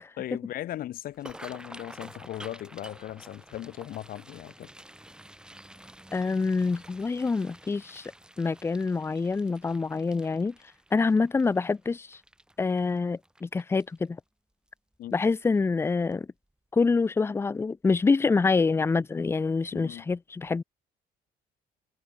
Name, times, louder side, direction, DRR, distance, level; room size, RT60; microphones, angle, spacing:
voice 1, 0.2-4.7 15.0-15.1 19.7-20.1, left 13 dB, 60° left, 0.8 m, -38 dB
sound 1, 1.1-14.2 14.7-15.0 15.3-15.7 16.1-16.3 17.5-17.7 18.0-18.2 18.6-18.7, right 1 dB, 5° right, 3.1 m, -50 dB
voice 2, 6.1-8.0 8.4-10.5 10.9-12.2 12.6-14.2 15.1-16.3 16.7-20.6, left 4 dB, 15° left, 0.4 m, -26 dB
cardioid pair, 110°, 17 cm